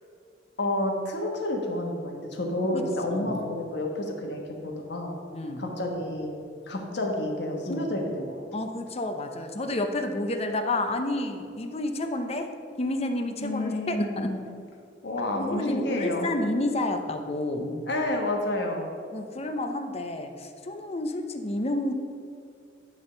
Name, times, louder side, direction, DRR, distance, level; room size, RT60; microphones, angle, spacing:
voice 1, 0.6-5.2 5.6-6.3 6.7-8.4 13.4-14.4 15.0-16.3 17.9-18.9, left 1 dB, 70° left, 1 dB, 1.4 m, -30 dB
voice 2, 2.7-3.4 5.3-5.7 7.7-8.1 8.5-12.5 12.8-14.3 15.4-17.8 19.1-21.9, left 1 dB, 35° left, 6 dB, 0.7 m, -30 dB
10.5 x 3.6 x 6.7 m, 2.3 s
head